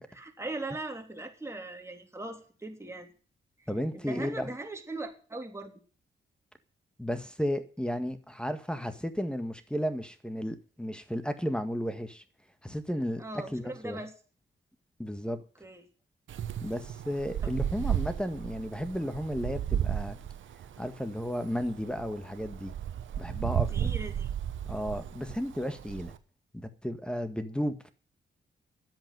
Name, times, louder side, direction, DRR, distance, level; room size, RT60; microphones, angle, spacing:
voice 1, 0.1-3.1 3.6-5.7 13.2-14.1 15.6-15.8 17.4-17.5 23.7-24.4, right 2 dB, 15° right, 3.4 m, -40 dB
voice 2, 3.7-4.5 7.0-12.2 12.6-13.2 13.5-14.0 15.0-15.4 16.6-20.2 20.8-22.7 23.2-23.7 24.7-26.1 26.5-27.9, equal, 5° left, 1.8 m, -33 dB
Wind, 16.3-26.2, right 10 dB, 80° right, 1.1 m, -34 dB
11.0 x 7.8 x 9.2 m
cardioid pair, 60°, 20 cm